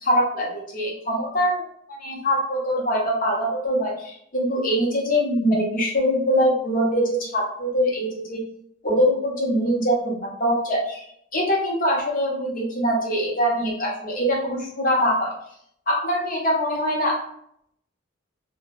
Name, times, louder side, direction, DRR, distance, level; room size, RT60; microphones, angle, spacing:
voice 1, 0.0-1.6 1.9-8.4 8.8-11.1 11.3-15.3 15.9-17.2, equal, 40° left, -3 dB, 0.8 m, -23 dB
2.2 x 2.1 x 3.2 m, 0.68 s
head